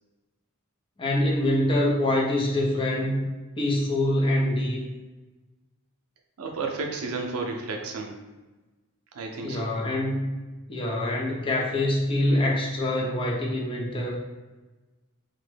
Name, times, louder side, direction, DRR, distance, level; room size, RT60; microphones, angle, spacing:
voice 1, 1.0-3.3 3.6-4.8 9.4-10.3 10.7-14.2, left 1 dB, 25° left, -3 dB, 0.5 m, -25 dB
voice 2, 6.4-8.2 9.1-9.7, right 3 dB, 85° right, 2 dB, 0.5 m, -32 dB
3.0 x 2.1 x 3.3 m, 1.2 s
head